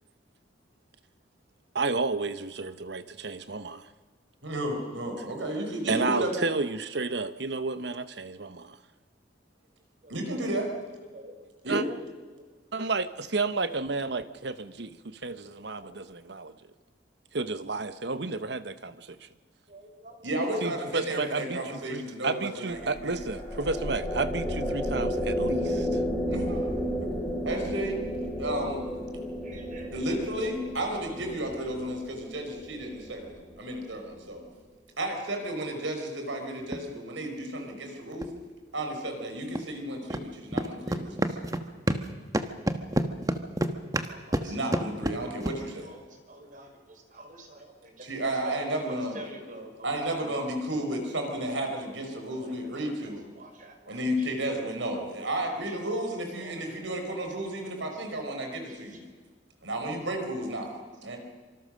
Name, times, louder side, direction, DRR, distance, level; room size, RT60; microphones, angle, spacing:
voice 1, 1.7-3.9 5.9-8.8 11.7-11.8 12.7-16.5 17.3-19.3 20.6-26.0, right 3 dB, 60° right, 13 dB, 1.0 m, -31 dB
voice 2, 4.4-6.5 10.1-10.7 11.6-11.9 20.2-23.4 26.3-27.1 27.4-28.0 28.4-28.8 29.9-34.4 35.0-38.3 38.7-41.5 44.3-45.9 48.0-49.2 49.8-53.2 53.9-59.0 59.6-61.2, right 1 dB, 85° right, 4 dB, 5.1 m, -33 dB
voice 3, 19.7-20.3 20.6-20.7 26.7-27.0 29.4-30.2 44.0-44.6 45.6-50.4 52.0-54.5 55.2-55.4 55.7-55.8 56.4-57.2 57.8-58.0 58.4-59.2, right 1 dB, 45° right, 5 dB, 4.7 m, -48 dB
sound 1, 22.7-34.2, equal, 10° left, 5.6 m, -33 dB
sound 2, 36.6-36.8 38.2-38.3 39.5-39.6 40.1-40.2 40.5-42.1 42.3-45.6, right 1 dB, 20° right, 1.3 m, -28 dB
26.0 x 25.5 x 6.5 m, 1.5 s
head